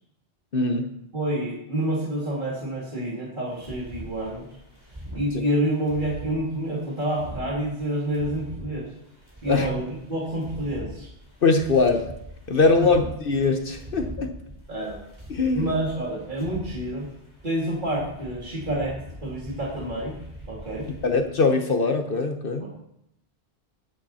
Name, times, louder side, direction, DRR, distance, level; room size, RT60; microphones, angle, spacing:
voice 1, 0.5-0.9 9.5-9.7 11.4-12.1 12.5-14.4 15.3-15.7 21.0-22.7, left 3 dB, 60° left, 6 dB, 1.2 m, -22 dB
voice 2, 1.1-4.5 5.1-8.9 9.4-11.1 12.8-12.9 14.7-15.0 15.5-17.1 17.4-20.2 20.5-20.9 22.6-22.7, right 1 dB, 50° right, -5 dB, 2.9 m, -28 dB
sound 1, 3.5-21.3, equal, 25° right, 4.4 m, -42 dB
19.0 x 8.8 x 4.3 m, 0.78 s
omnidirectional pair, 1.0 m